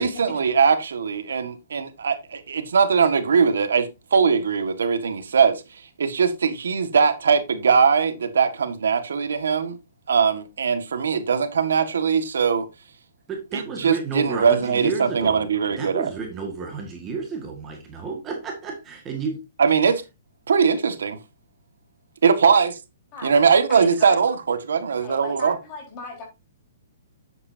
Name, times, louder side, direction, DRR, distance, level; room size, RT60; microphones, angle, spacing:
voice 1, 0.0-5.6 6.0-9.8 10.1-12.7 13.5-16.1 19.6-20.0 20.5-21.2 22.2-22.8 23.2-25.6, right 6 dB, 85° right, 1.6 m, -21 dB
voice 2, 13.3-19.4, right 5 dB, 15° right, 1.8 m, -31 dB
voice 3, 23.7-24.2 25.0-26.2, left 3 dB, 25° left, 4.3 m, -37 dB
10.0 x 8.0 x 2.7 m
hypercardioid pair, 165°, 0 cm